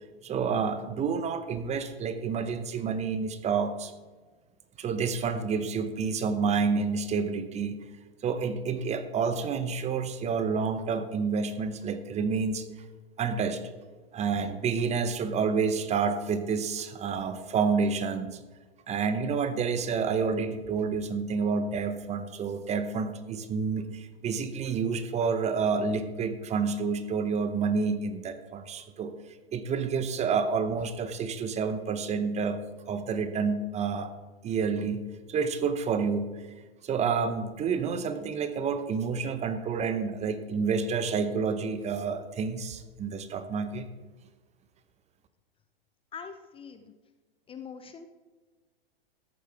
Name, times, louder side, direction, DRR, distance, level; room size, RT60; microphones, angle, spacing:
voice 1, 0.2-3.9 4.8-7.8 8.2-12.7 13.2-13.6 14.1-18.4 18.9-29.1 29.5-32.6 32.9-34.1 34.4-35.0 35.3-36.3 36.8-43.9, right 5 dB, 20° right, 10 dB, 0.8 m, -29 dB
voice 2, 46.1-46.9 47.5-48.1, left 6 dB, 20° left, 8 dB, 0.6 m, -43 dB
14.0 x 10.0 x 3.4 m, 1.3 s
hypercardioid pair, 110°, 30 cm